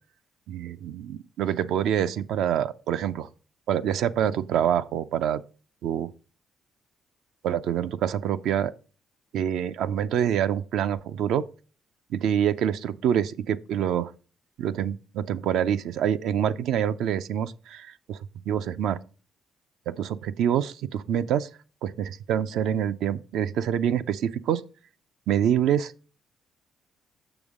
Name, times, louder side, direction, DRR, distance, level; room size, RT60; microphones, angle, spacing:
voice 1, 0.5-3.3 3.7-5.4 5.8-6.1 7.4-8.7 9.3-11.4 12.1-14.1 14.6-18.2 18.5-19.0 19.9-21.5 21.8-24.6 25.3-25.9, right 9 dB, 80° right, 0.5 m, -26 dB
7.0 x 6.2 x 3.6 m
cardioid pair, 90°, 0 cm